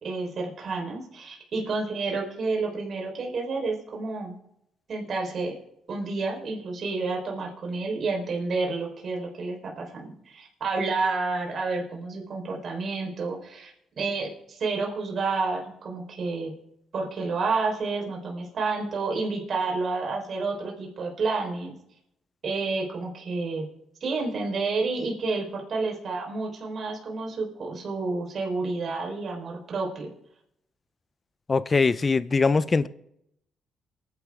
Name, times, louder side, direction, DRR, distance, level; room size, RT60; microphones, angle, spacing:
voice 1, 0.0-4.4 4.9-5.5 5.9-16.5 16.9-21.8 22.4-23.7 24.0-30.1, right 3 dB, 55° right, 4.4 m, -30 dB
voice 2, 31.5-32.9, left 4 dB, 30° left, 0.7 m, -22 dB
29.0 x 11.0 x 3.7 m
cardioid pair, 90°, 0 cm